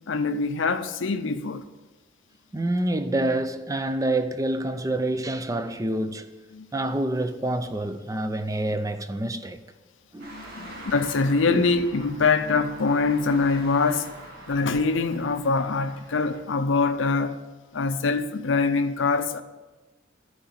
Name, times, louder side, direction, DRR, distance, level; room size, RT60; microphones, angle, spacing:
voice 1, 0.1-1.6 6.5-6.7 10.2-14.1 14.5-17.4 17.7-19.4, left 4 dB, 80° left, 0.6 m, -24 dB
voice 2, 2.5-6.3 6.7-9.6 10.1-10.7 11.5-11.6, right 1 dB, 20° right, 0.5 m, -27 dB
sound 1, 10.2-16.4, right 1 dB, 55° right, 2.3 m, -44 dB
13.0 x 4.8 x 7.3 m
head